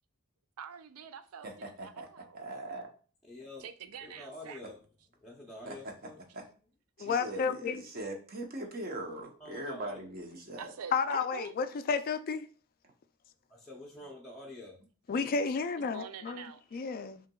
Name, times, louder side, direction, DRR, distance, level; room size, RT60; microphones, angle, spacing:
voice 1, 0.6-2.4 3.6-4.6 8.9-9.0 10.6-11.5 11.9-12.0 15.8-16.8, right 7 dB, 70° right, 0.4 m, -46 dB
voice 2, 1.4-2.1 2.3-2.9 5.7-6.4 7.0-10.7 14.0-14.1, right 1 dB, 45° right, 0.8 m, -41 dB
voice 3, 3.3-3.6 4.0-4.8 5.2-6.2 9.4-9.9 13.5-14.8, left 1 dB, ahead, 0.6 m, -47 dB
voice 4, 7.0-7.8 10.9-12.5 15.1-16.5 16.7-17.2, left 5 dB, 40° left, 0.3 m, -31 dB
5.7 x 2.9 x 2.3 m
head